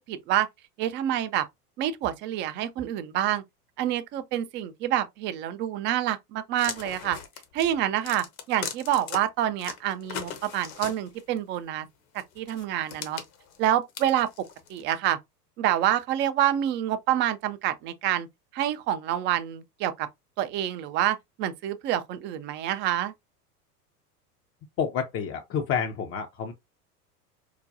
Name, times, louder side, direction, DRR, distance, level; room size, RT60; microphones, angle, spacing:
voice 1, 0.1-0.5 0.8-1.5 1.8-3.4 3.8-7.2 7.5-11.9 12.4-13.2 13.6-15.2 15.6-18.3 18.5-20.1 20.4-23.1, right 11 dB, 25° right, 0.4 m, -27 dB
sound 1, 6.6-9.2 9.6-11.4 12.2-14.8, left 7 dB, 65° left, 1.1 m, -39 dB
voice 2, 24.8-26.5, left 7 dB, 30° left, 0.5 m, -29 dB
4.8 x 2.2 x 2.6 m
hypercardioid pair, 90°, 47 cm